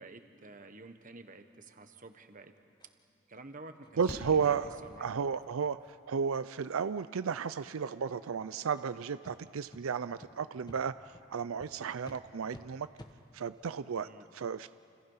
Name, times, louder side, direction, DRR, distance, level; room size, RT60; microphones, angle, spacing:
voice 1, 0.0-2.5 3.3-3.8 4.1-5.1 14.0-14.2, right 3 dB, 40° right, 8 dB, 1.3 m, -50 dB
sound 1, 2.8-2.9 3.3-3.4 3.8-4.0 4.3-4.4 4.8-4.9 5.3-5.5 5.8-5.9 6.3-6.4 6.8-6.9 7.3-7.6 8.2-8.3 8.7-8.9 9.2-9.3 9.7-9.8 10.2-10.3 10.7-10.8 11.1-11.3 11.6-11.7 12.0-12.2 12.5-12.6 13.0-13.1, left 1 dB, 20° left, 1.3 m, -53 dB
voice 2, 4.0-4.7 5.0-5.8 6.1-12.9 13.3-14.7, right 6 dB, 90° right, 14 dB, 0.5 m, -33 dB
Fireworks, 4.1-5.4 7.1-7.2 7.4-7.5, left 1 dB, 70° left, 4.7 m, -46 dB
29.5 x 27.5 x 5.7 m, 2.6 s
head